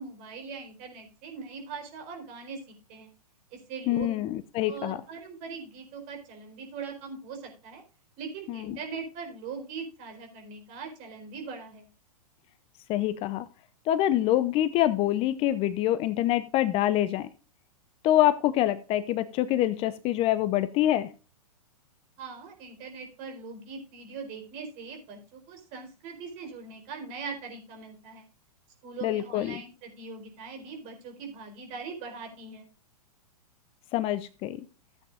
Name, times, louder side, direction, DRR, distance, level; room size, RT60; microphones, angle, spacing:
voice 1, 0.0-3.1 3.5-4.1 4.7-7.8 8.2-11.9 22.2-28.3 28.8-32.7, right 5 dB, 40° right, 4.0 m, -41 dB
voice 2, 3.9-5.0 8.5-8.8 12.9-13.5 13.9-17.3 18.0-21.1 29.0-29.6 33.9-34.6, left 13 dB, 30° left, 0.6 m, -25 dB
15.0 x 8.5 x 2.5 m
hypercardioid pair, 115°, 20 cm